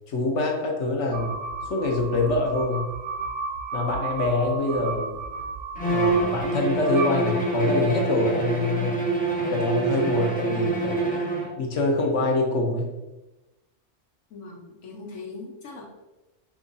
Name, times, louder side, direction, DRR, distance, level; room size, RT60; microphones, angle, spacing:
voice 1, 0.1-2.9 3.7-5.2 5.9-9.0 9.5-11.1 11.6-12.9, left 2 dB, 65° left, 1 dB, 1.0 m, -25 dB
sound 1, 1.1-7.9, right 4 dB, 70° right, 0.4 m, -34 dB
Bowed string instrument, 5.8-11.6, right 3 dB, 10° left, 0.4 m, -26 dB
voice 2, 14.3-15.9, left 3 dB, 90° left, 0 dB, 1.3 m, -40 dB
4.6 x 2.4 x 3.9 m, 1.0 s
omnidirectional pair, 1.3 m